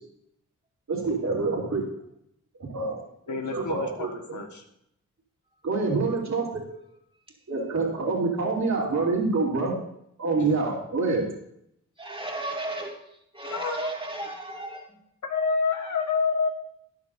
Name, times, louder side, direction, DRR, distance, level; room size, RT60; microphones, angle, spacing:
voice 1, 0.9-1.9 2.6-3.0 3.3-4.4 5.6-6.6 7.5-9.7 10.2-11.2, right 3 dB, 60° right, -3 dB, 3.0 m, -26 dB
voice 2, 3.3-4.6 10.4-10.5 13.4-13.9 15.2-16.5, left 5 dB, 65° left, 3 dB, 1.7 m, -28 dB
voice 3, 12.0-13.0 13.3-14.9, right 2 dB, 15° right, 0 dB, 2.6 m, -34 dB
13.0 x 10.0 x 2.7 m, 0.76 s
cardioid pair, 65°, 32 cm